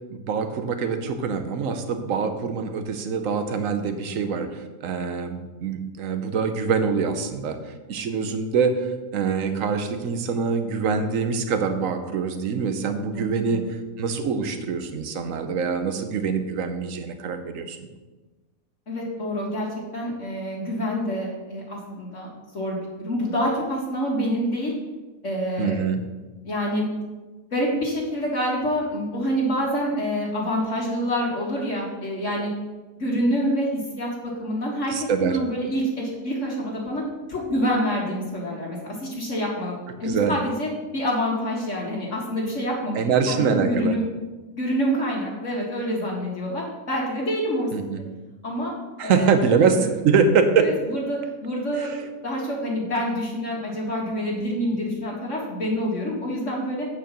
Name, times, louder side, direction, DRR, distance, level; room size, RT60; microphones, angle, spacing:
voice 1, 0.1-17.9 25.6-26.0 34.9-35.4 40.0-40.4 42.9-43.9 47.7-48.0 49.0-50.7 51.8-52.0, right 5 dB, 60° right, 7 dB, 1.2 m, -24 dB
voice 2, 13.1-13.7 18.9-19.7 19.9-22.3 22.5-24.7 25.2-25.8 26.4-26.8 27.5-32.5 33.0-34.1 34.4-37.0 37.3-43.0 43.3-44.0 44.6-47.7 48.4-48.7 49.0-49.6 50.6-56.9, equal, 50° left, -3 dB, 1.9 m, -27 dB
8.9 x 4.9 x 6.8 m, 1.2 s
omnidirectional pair, 1.7 m